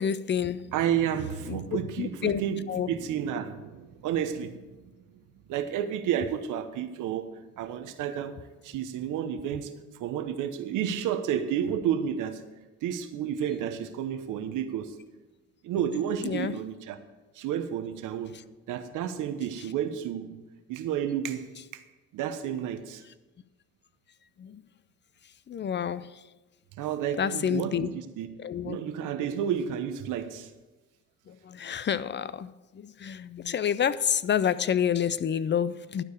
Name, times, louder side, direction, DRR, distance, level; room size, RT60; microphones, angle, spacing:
voice 1, 0.0-0.7 1.5-2.4 2.7-2.9 16.2-16.6 18.3-18.4 24.4-24.6 25.5-26.2 27.2-27.9 28.4-28.8 31.3-36.0, left 8 dB, 40° left, 16 dB, 0.4 m, -29 dB
voice 2, 0.7-4.9 5.5-8.4 8.6-9.7 10.0-12.4 12.8-14.9 15.6-17.0 17.3-18.3 18.7-20.4 20.7-21.8 22.1-23.0 26.8-28.3 28.6-30.5, right 9 dB, 90° right, 9 dB, 0.9 m, -31 dB
12.0 x 4.7 x 8.3 m, 1.2 s
cardioid pair, 90°, 30 cm